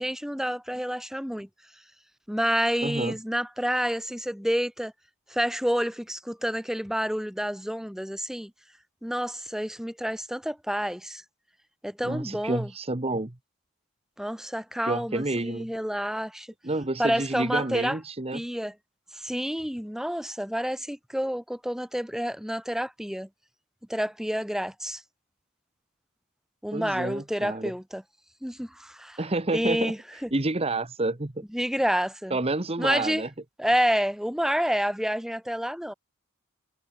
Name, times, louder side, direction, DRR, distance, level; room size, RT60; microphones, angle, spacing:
voice 1, 0.0-1.5 2.3-4.9 5.3-8.5 9.0-11.2 11.8-12.7 14.2-16.5 17.0-18.0 18.3-18.7 19.1-23.3 23.9-25.0 26.6-28.0 28.4-29.2 29.5-30.3 31.5-32.4 32.8-33.2 33.6-35.9, equal, ahead, 1.9 m, -29 dB
voice 2, 2.8-3.2 12.0-13.4 14.8-15.7 16.6-18.4 26.7-27.7 29.2-29.9 30.3-31.4 32.3-33.3, right 2 dB, 25° right, 1.1 m, -29 dB
head